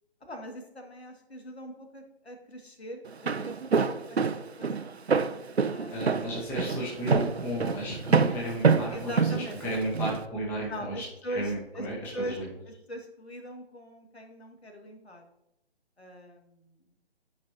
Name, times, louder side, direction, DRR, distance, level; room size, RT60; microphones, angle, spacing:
voice 1, 0.2-4.2 4.6-5.0 5.7-6.2 8.9-9.6 10.7-11.9 12.1-12.4 12.7-15.3 16.0-16.8, equal, 75° left, 3 dB, 1.9 m, -41 dB
Walk footsteps, 3.1-10.2, right 5 dB, 80° right, 0.6 m, -26 dB
voice 2, 5.9-12.5, equal, 5° left, -4 dB, 0.9 m, -34 dB
11.5 x 5.2 x 2.7 m, 0.86 s
figure-of-eight pair, 140°, 32 cm